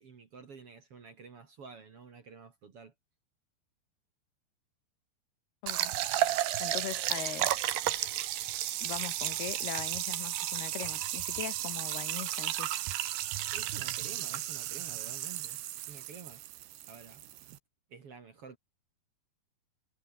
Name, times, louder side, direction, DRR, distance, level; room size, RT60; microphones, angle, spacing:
voice 1, 0.0-2.9 13.5-15.6 15.9-16.4 16.9-17.2 17.9-18.6, right 5 dB, 45° right, 2.5 m, -50 dB
sound 1, 5.7-17.6, right 13 dB, 85° right, 3.5 m, -33 dB
voice 2, 6.6-7.5 8.8-12.7, left 12 dB, 75° left, 3.4 m, -40 dB
omnidirectional pair, 4.7 m